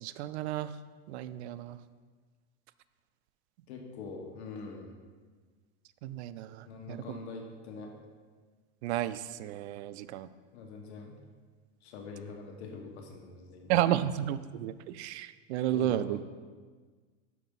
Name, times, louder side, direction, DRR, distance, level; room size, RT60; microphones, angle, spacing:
voice 1, 0.0-0.7 1.1-1.8 6.0-7.0 8.8-10.3 13.7-16.2, right 12 dB, 80° right, 15 dB, 0.5 m, -32 dB
voice 2, 3.7-5.0 6.7-7.9 10.5-11.2 11.8-13.8 15.7-16.2, left 4 dB, 80° left, 2 dB, 1.4 m, -44 dB
6.1 x 5.0 x 5.4 m, 1.5 s
supercardioid pair, 150°, 33 cm